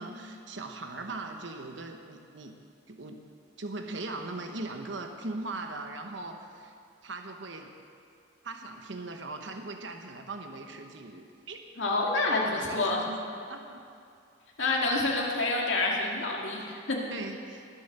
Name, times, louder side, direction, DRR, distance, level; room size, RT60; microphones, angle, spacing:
voice 1, 0.0-2.5 2.9-3.2 3.6-6.7 7.0-7.7 8.4-11.6 12.4-13.2 13.5-13.8 17.1-17.7, right 2 dB, 65° right, 4 dB, 1.1 m, -39 dB
voice 2, 11.8-13.0 14.6-17.0, left 2 dB, 70° left, -1 dB, 2.2 m, -28 dB
20.0 x 7.8 x 6.7 m, 2.4 s
head